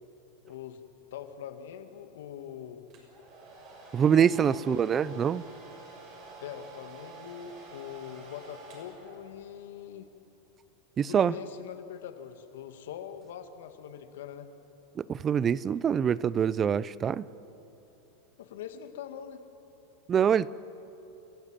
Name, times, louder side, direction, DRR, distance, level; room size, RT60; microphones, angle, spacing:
voice 1, 0.4-0.8 1.1-2.9 4.1-5.3 6.4-10.1 11.1-14.5 18.4-19.4, left 9 dB, 75° left, 2.1 m, -43 dB
Domestic sounds home sounds, 2.9-9.6, right 3 dB, 45° right, 6.8 m, -49 dB
voice 2, 3.9-5.4 11.0-11.4 15.0-17.3 20.1-20.5, right 8 dB, 25° right, 0.5 m, -25 dB
29.5 x 14.5 x 9.1 m
supercardioid pair, 135°, 0 cm